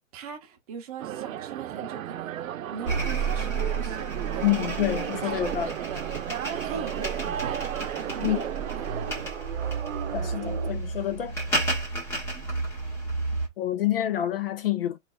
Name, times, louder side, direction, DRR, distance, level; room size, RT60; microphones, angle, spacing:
voice 1, 0.1-4.4 5.1-5.4 5.9-6.0 6.6-8.5 8.7-9.3, right 6 dB, 30° right, 0.8 m, -40 dB
sound 1, 1.0-9.3, right 11 dB, 90° right, 0.7 m, -35 dB
sound 2, 2.8-13.5, right 3 dB, 5° left, 0.7 m, -31 dB
sound 3, 4.2-10.7, right 8 dB, 60° right, 1.1 m, -38 dB
voice 2, 4.4-5.7 8.2-8.4 10.1-11.4 13.6-15.0, left 12 dB, 45° left, 0.5 m, -27 dB
5.2 x 3.2 x 2.2 m
hypercardioid pair, 165°, 39 cm